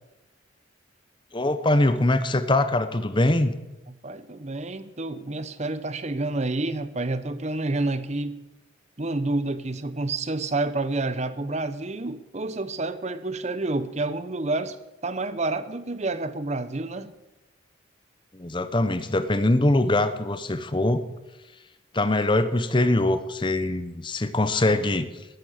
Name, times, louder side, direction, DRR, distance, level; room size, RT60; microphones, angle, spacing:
voice 1, 1.3-3.5 18.3-21.0 21.9-25.1, left 2 dB, 25° left, 11 dB, 0.8 m, -23 dB
voice 2, 4.0-8.4 9.0-14.8 15.0-17.1, right 2 dB, 35° right, 13 dB, 0.9 m, -29 dB
13.5 x 10.5 x 8.1 m, 1.0 s
head